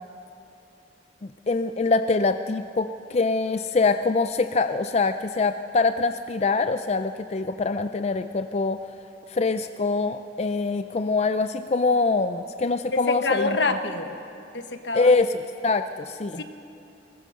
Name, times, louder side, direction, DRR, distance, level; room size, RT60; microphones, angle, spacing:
voice 1, 1.5-8.9 9.3-13.6 14.9-16.4, left 3 dB, 35° left, 9 dB, 0.4 m, -24 dB
voice 2, 12.9-14.2 14.5-15.1 16.4-16.5, left 3 dB, 75° left, 7 dB, 1.2 m, -26 dB
20.5 x 20.0 x 6.4 m, 2.7 s
head